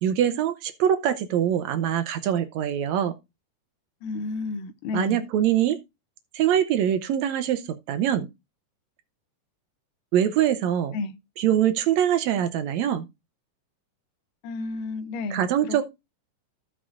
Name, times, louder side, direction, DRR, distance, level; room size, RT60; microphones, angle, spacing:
voice 1, 0.0-3.1 4.9-5.8 6.3-8.3 10.1-11.0 11.4-13.1 15.3-15.8, right 10 dB, 75° right, 1.7 m, -23 dB
voice 2, 4.0-5.3 10.9-11.2 14.4-15.8, left 3 dB, 85° left, 2.3 m, -32 dB
15.0 x 6.2 x 2.5 m
omnidirectional pair, 3.7 m